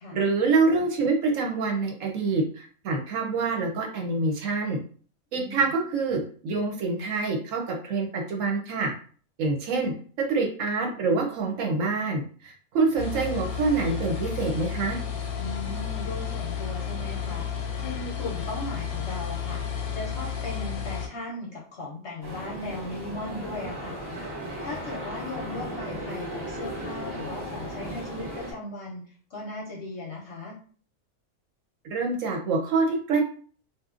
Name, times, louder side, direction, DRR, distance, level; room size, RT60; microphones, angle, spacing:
voice 1, 0.1-4.8 5.3-8.9 9.4-9.9 10.3-15.0 31.8-33.2, right 3 dB, 70° right, 2 dB, 0.9 m, -26 dB
voice 2, 5.3-5.7 15.4-17.5 17.8-24.0 24.6-30.6, left 2 dB, 60° left, -2 dB, 0.8 m, -37 dB
sound 1, 13.0-21.1, left 7 dB, 85° left, 1.1 m, -32 dB
sound 2, 22.2-28.5, right 1 dB, 25° right, 0.6 m, -36 dB
2.9 x 2.3 x 2.4 m, 0.43 s
omnidirectional pair, 1.5 m